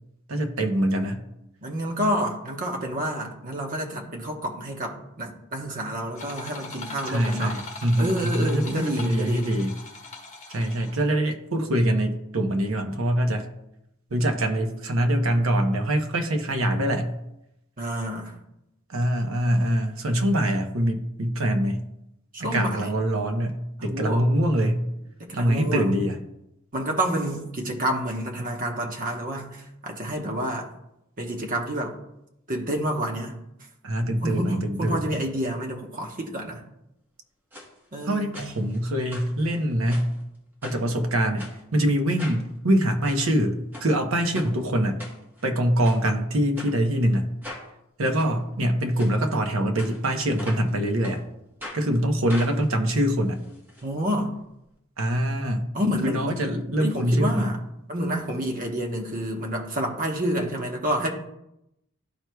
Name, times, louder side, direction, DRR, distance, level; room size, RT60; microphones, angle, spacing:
voice 1, 0.3-1.2 7.1-9.7 10.5-13.5 14.1-17.1 18.9-21.8 22.4-24.8 25.4-26.2 33.8-35.1 38.0-40.1 40.6-45.0 45.4-47.3 48.0-51.2 51.7-53.4 55.0-55.7 56.0-57.6, right 1 dB, 70° right, 5 dB, 0.9 m, -24 dB
voice 2, 1.6-7.6 8.0-9.6 17.8-18.4 22.3-22.9 23.8-24.2 25.2-26.0 26.7-30.7 31.2-31.9 32.5-33.4 34.2-36.6 37.9-38.5 53.8-54.3 55.7-56.3 56.8-57.6 57.9-61.1, right 1 dB, 40° right, 1 dB, 1.0 m, -29 dB
sound 1, 6.2-11.1, left 3 dB, 35° left, 1.2 m, -40 dB
sound 2, 37.5-37.7 38.3-38.8 39.1-40.2 40.6-40.9 41.4-41.6 42.2-42.4 42.9-43.2 43.7-43.9 44.3-44.5 45.0-45.5 45.8-46.0 46.6-46.7 47.4-47.7 48.2-48.3 48.9-49.1 49.8-50.7 51.0-51.2 51.6-51.8 52.3-53.8 54.1-54.2 54.4-54.5, left 1 dB, 10° right, 1.1 m, -40 dB
12.0 x 4.6 x 2.3 m, 0.84 s
head